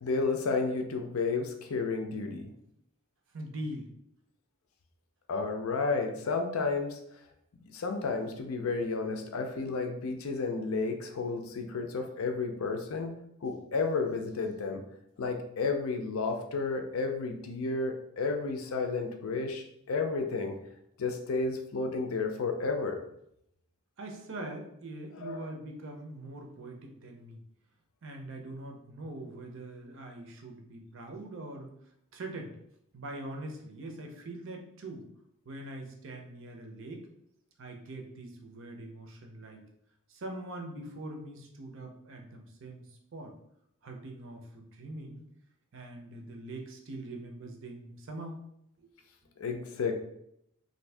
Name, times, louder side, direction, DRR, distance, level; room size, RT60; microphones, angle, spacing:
voice 1, 0.0-2.5 5.3-7.0 7.7-14.8 15.2-20.5 21.0-23.0 25.2-25.4 49.4-49.9, left 4 dB, 70° left, 5 dB, 0.5 m, -32 dB
voice 2, 3.3-3.9 24.0-27.4 28.0-31.7 32.1-32.6 32.9-35.1 35.5-37.1 37.6-39.6 40.1-42.9 43.1-43.3 43.8-45.2 45.7-48.4 48.8-48.9, right 1 dB, 55° right, 3 dB, 0.6 m, -43 dB
2.6 x 2.6 x 3.3 m, 0.76 s
head